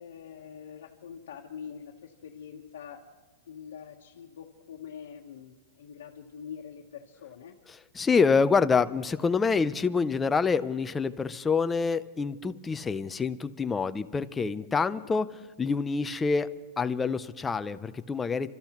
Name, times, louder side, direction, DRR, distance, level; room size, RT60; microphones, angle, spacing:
voice 1, 0.0-3.0 3.4-7.6 14.9-15.1, left 7 dB, 80° left, -1 dB, 1.1 m, -44 dB
voice 2, 8.0-15.3 15.6-16.5 16.8-18.5, left 5 dB, 10° left, 12 dB, 0.4 m, -26 dB
30.0 x 13.5 x 3.0 m, 1.3 s
supercardioid pair, 165°, 0 cm